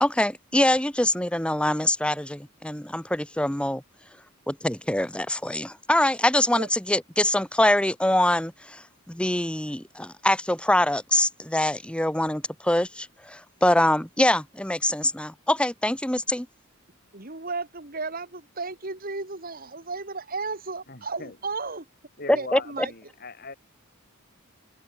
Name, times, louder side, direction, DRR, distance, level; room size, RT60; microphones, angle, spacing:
voice 1, 0.0-3.8 4.5-8.8 9.1-16.5 22.5-22.6, left 1 dB, 5° left, 1.0 m, -24 dB
voice 2, 17.1-21.9 22.4-22.9, right 3 dB, 45° right, 2.6 m, -34 dB
voice 3, 20.9-21.4 22.2-23.5, left 3 dB, 45° left, 4.8 m, -40 dB
head